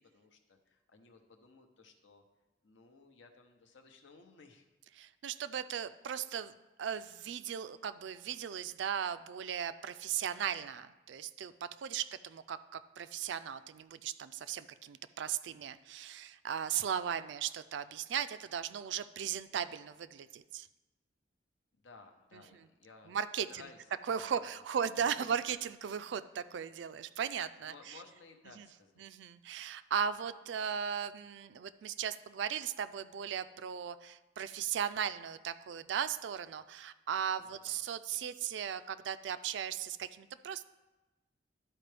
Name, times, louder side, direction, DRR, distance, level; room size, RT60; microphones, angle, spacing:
voice 1, 0.0-2.2 2.6-4.6 21.7-23.2 23.5-24.6 25.1-25.3 27.6-29.0 37.4-37.8, left 4 dB, 80° left, 3 dB, 0.8 m, -58 dB
voice 2, 5.0-6.5 6.8-11.5 11.8-20.7 23.1-23.6 24.1-28.0 28.5-28.7 29.0-40.6, right 8 dB, 70° right, 13 dB, 0.3 m, -37 dB
12.0 x 4.4 x 3.3 m, 1.1 s
head